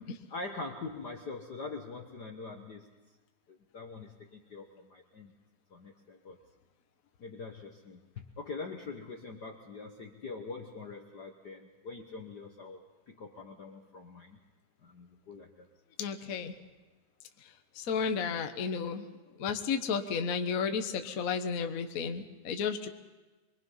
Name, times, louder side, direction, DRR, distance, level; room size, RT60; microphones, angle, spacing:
voice 1, 0.3-2.9 3.5-5.3 5.7-6.4 7.2-14.4 14.8-15.7, left 3 dB, 55° left, 3 dB, 1.1 m, -44 dB
voice 2, 16.0-16.5 17.7-19.1 19.4-22.9, left 6 dB, 75° left, 6 dB, 0.8 m, -32 dB
25.0 x 22.5 x 5.6 m, 1.2 s
omnidirectional pair, 3.4 m